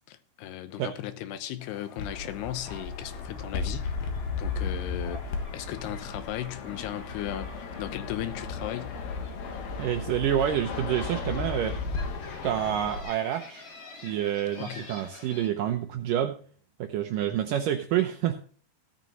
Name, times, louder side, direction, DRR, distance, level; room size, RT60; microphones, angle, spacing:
voice 1, 0.1-4.0 4.4-8.9 14.6-14.9 17.3-17.4, left 12 dB, 85° left, 3.0 m, -36 dB
sound 1, 1.6-15.5, left 3 dB, 40° left, 2.8 m, -49 dB
Fixed-wing aircraft airplane, 2.0-13.0, left 4 dB, 70° left, 3.2 m, -35 dB
voice 2, 9.8-11.8 12.4-13.7 14.0-16.4 16.8-18.4, right 11 dB, 75° right, 2.0 m, -28 dB
16.0 x 9.3 x 3.0 m
omnidirectional pair, 4.6 m